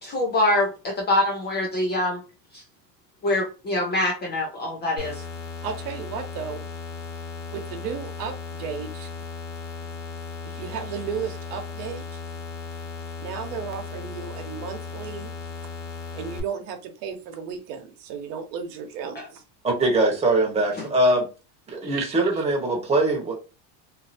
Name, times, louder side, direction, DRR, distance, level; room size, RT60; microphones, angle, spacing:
voice 1, 0.0-2.2 2.5-2.6 3.2-5.2 19.2-19.3 20.8-20.9, left 1 dB, 25° left, 0.3 m, -24 dB
sound 1, 5.0-16.4, left 4 dB, 90° left, 1.2 m, -36 dB
voice 2, 5.6-6.6 7.5-9.1 10.4-12.2 13.2-15.3 16.1-19.4 21.8-22.1 22.3-22.4, right 7 dB, 70° right, 1.1 m, -34 dB
voice 3, 19.6-21.3 21.7-23.3, right 2 dB, 15° right, 1.0 m, -22 dB
2.8 x 2.6 x 2.5 m
supercardioid pair, 135°, 49 cm